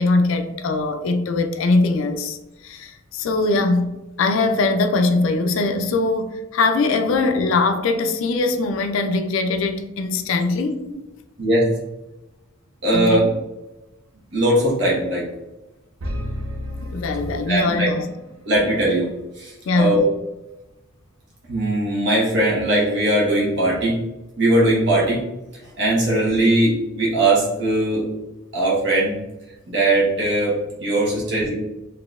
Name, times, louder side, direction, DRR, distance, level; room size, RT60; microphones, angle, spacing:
voice 1, 0.0-2.4 2.6-10.8 12.9-13.2 16.8-18.1 19.7-20.0, left 3 dB, 65° left, 0.3 m, -21 dB
voice 2, 12.8-13.2 14.3-15.3 17.5-17.9 18.5-19.1 19.4-20.0 21.5-24.0 24.4-25.2 25.8-28.0 28.5-29.2 29.7-31.5, right 1 dB, 55° right, 1.2 m, -19 dB
sound 1, 16.0-18.1, equal, 85° right, 0.7 m, -31 dB
3.8 x 2.7 x 2.4 m
head